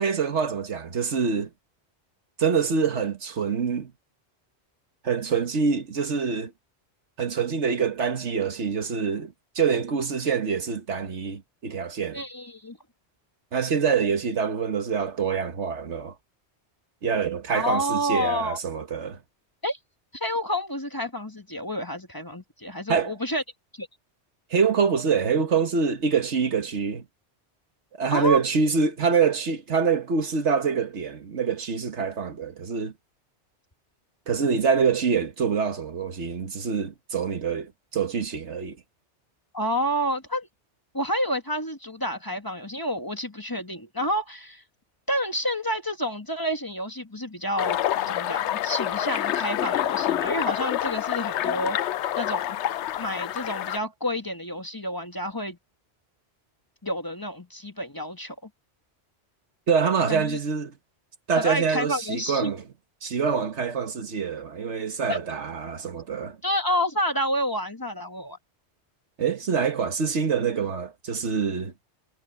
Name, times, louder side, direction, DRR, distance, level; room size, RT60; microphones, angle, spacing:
voice 1, 0.0-1.5 2.4-3.9 5.0-6.5 7.2-12.2 13.5-16.1 17.0-19.2 22.9-23.1 24.5-27.0 28.0-32.9 34.3-38.8 59.7-60.7 61.3-62.6 63.0-66.4 69.2-71.7, right 6 dB, 85° right, 1.7 m, -25 dB
voice 2, 12.1-12.8 17.5-18.6 19.6-19.8 20.1-23.4 23.7-23.9 28.1-28.4 39.5-40.5 40.9-44.6 45.1-47.8 48.1-51.8 52.2-52.6 53.0-55.6 56.8-58.3 60.1-60.4 61.3-62.5 65.1-65.2 66.4-68.4, equal, 20° left, 1.5 m, -29 dB
sound 1, 47.6-53.8, left 12 dB, 85° left, 0.9 m, -27 dB
omnidirectional pair, 1.2 m